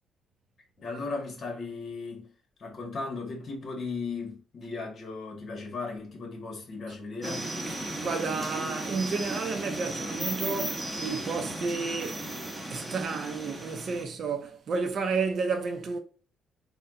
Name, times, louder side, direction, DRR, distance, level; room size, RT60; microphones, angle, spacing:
voice 1, 0.8-2.3 2.6-7.5, left 3 dB, 50° left, 1.7 m, -36 dB
sound 1, 7.2-14.0, right 1 dB, 15° right, 1.0 m, -35 dB
voice 2, 7.8-12.3 12.7-16.0, right 4 dB, 60° right, 0.8 m, -31 dB
4.1 x 2.4 x 3.8 m
cardioid pair, 90°, 0 cm